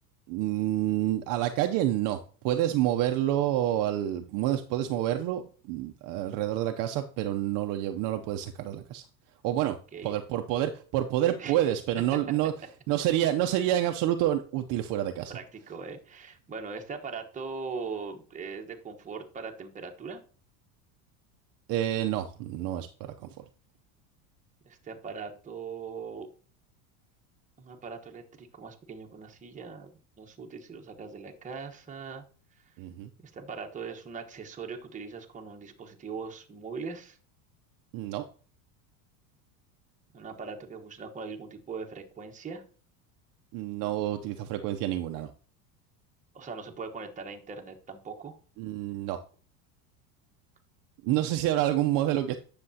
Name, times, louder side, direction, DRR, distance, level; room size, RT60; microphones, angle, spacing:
voice 1, 0.3-5.4 5.7-9.0 9.4-9.8 10.0-12.5 12.9-15.3 21.7-23.4 32.8-33.1 37.9-38.2 43.5-45.3 48.6-49.2 51.0-52.4, right 13 dB, 50° right, 6 dB, 0.6 m, -28 dB
voice 2, 15.3-20.2 24.6-26.3 27.6-29.9 30.2-32.2 33.2-37.2 40.1-42.6 46.3-48.3, right 5 dB, 15° right, 2 dB, 1.1 m, -40 dB
9.8 x 6.7 x 2.8 m, 0.41 s
supercardioid pair, 135°, 44 cm